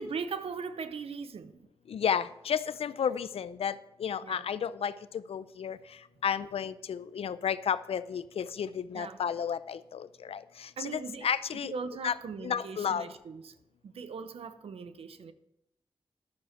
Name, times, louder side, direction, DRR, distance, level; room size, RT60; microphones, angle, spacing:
voice 1, 0.0-1.6 4.2-4.5 8.9-9.2 10.8-11.3 11.5-13.5 13.8-15.3, right 5 dB, 85° right, 0.7 m, -39 dB
voice 2, 1.9-3.7 4.0-4.9 5.3-5.8 6.2-11.7 12.0-13.1, left 8 dB, 80° left, 0.5 m, -32 dB
11.5 x 6.5 x 5.8 m
cardioid pair, 70°, 10 cm